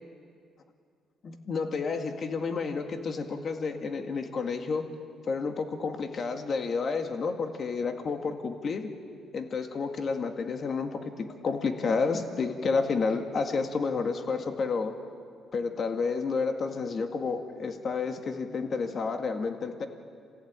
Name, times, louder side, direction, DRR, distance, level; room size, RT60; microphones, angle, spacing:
voice 1, 1.2-4.9 5.3-8.9 9.3-15.0 15.5-19.9, left 4 dB, 50° left, 5 dB, 2.1 m, -30 dB
28.0 x 16.5 x 9.0 m, 2.2 s
cardioid pair, 95°, 0 cm